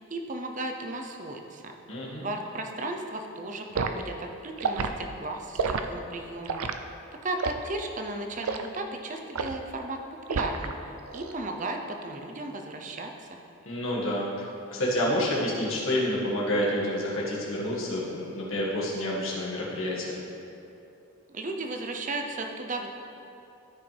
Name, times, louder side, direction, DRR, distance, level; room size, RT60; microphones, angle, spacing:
voice 1, 0.1-1.7 2.2-6.7 7.2-10.0 10.3-10.7 11.1-13.4 21.3-22.9, right 2 dB, 35° right, 3 dB, 0.6 m, -35 dB
voice 2, 1.9-2.3 13.7-14.5 14.7-20.2, left 1 dB, 70° left, -5 dB, 1.8 m, -28 dB
Liquid, 3.7-4.0 4.6-4.9 5.5-5.8 6.5-6.8 7.4-7.7 8.4-8.7 9.3-9.6 10.3-10.7 11.1-11.3, right 5 dB, 90° right, 0.5 m, -29 dB
13.5 x 5.6 x 3.4 m, 2.8 s
head